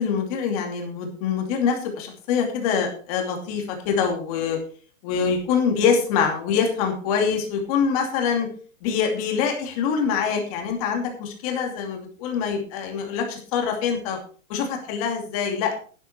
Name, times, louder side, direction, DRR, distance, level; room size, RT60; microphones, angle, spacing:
voice 1, 0.0-4.6 5.0-8.5 8.8-14.2 14.5-15.8, left 6 dB, 25° left, 3 dB, 2.6 m, -24 dB
12.5 x 10.0 x 4.4 m, 0.42 s
hypercardioid pair, 175°, 43 cm